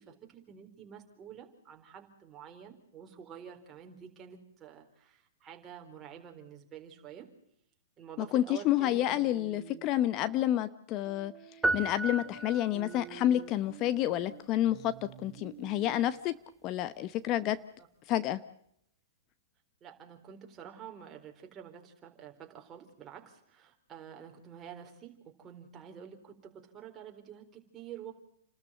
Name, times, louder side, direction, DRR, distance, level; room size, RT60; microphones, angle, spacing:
voice 1, 0.0-7.3 8.0-9.1 19.8-28.1, right 8 dB, 25° right, 3 dB, 4.1 m, -49 dB
voice 2, 8.3-11.3 11.7-14.9 15.2-16.4 16.6-17.6 18.1-18.4, left 13 dB, 35° left, 14 dB, 0.8 m, -29 dB
sound 1, 9.1-9.9 11.0-16.1, right 12 dB, 45° right, 4.3 m, -50 dB
sound 2, 11.6-13.1, right 2 dB, 5° right, 0.9 m, -33 dB
30.0 x 13.0 x 7.7 m, 0.72 s
hypercardioid pair, 125°, 0 cm